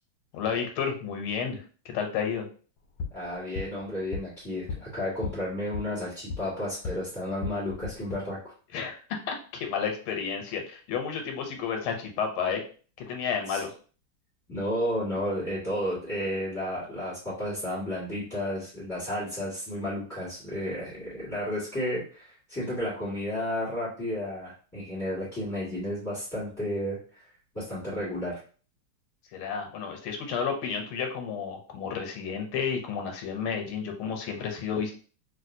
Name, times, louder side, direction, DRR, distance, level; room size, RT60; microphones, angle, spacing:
voice 1, 0.3-2.4 8.7-12.6 13.1-13.7 29.3-34.9, left 6 dB, 90° left, 4 dB, 1.5 m, -31 dB
sound 1, 2.8-7.0 7.3-8.2, left 5 dB, 70° left, 1.1 m, -38 dB
voice 2, 3.1-8.5 13.5-13.6 14.5-27.2 27.5-28.4, left 1 dB, 10° left, -9 dB, 1.5 m, -32 dB
3.1 x 2.9 x 2.6 m, 0.40 s
omnidirectional pair, 2.3 m